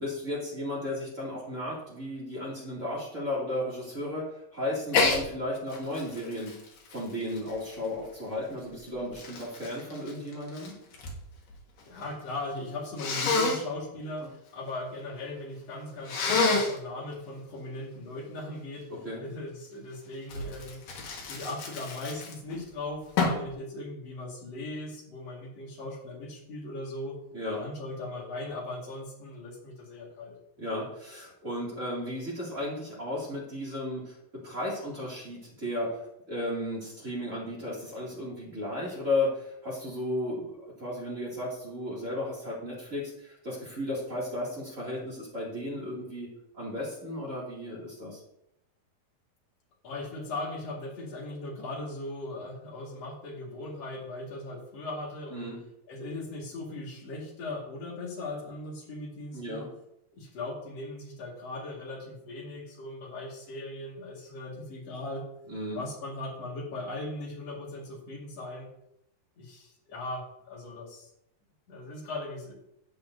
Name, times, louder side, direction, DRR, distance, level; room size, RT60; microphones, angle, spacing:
voice 1, 0.0-6.6 6.9-10.7 14.2-14.3 18.9-19.2 27.3-27.6 30.6-46.3 46.5-48.2 55.3-55.6 59.3-59.7 65.5-65.8, left 1 dB, 25° right, -5 dB, 2.2 m, -34 dB
Sneeze, 4.9-5.2 5.7-8.0 8.7-11.2 11.5-12.1 13.0-13.6 16.0-16.8 20.3-22.6 23.2-23.5, left 3 dB, 70° left, 3.1 m, -29 dB
voice 2, 11.9-18.9 19.2-20.8 21.2-27.2 27.5-30.4 49.8-55.5 55.9-59.6 60.1-65.3 65.7-68.7 69.4-71.1 71.7-72.5, left 2 dB, 50° left, -2 dB, 2.7 m, -38 dB
15.5 x 5.7 x 2.7 m, 0.80 s
omnidirectional pair, 4.2 m